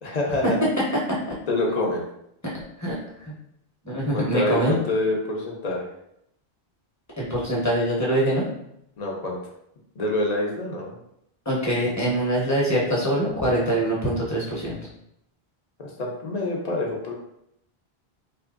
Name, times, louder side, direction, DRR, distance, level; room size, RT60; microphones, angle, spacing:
voice 1, 0.0-0.6 1.5-2.0 4.1-5.9 9.0-9.4 10.0-11.0 15.8-17.1, left 2 dB, 45° left, -1 dB, 0.7 m, -26 dB
voice 2, 3.8-4.8 7.2-8.5 11.4-14.8, right 1 dB, 20° left, -5 dB, 0.9 m, -24 dB
3.5 x 2.8 x 2.4 m, 0.77 s
omnidirectional pair, 1.0 m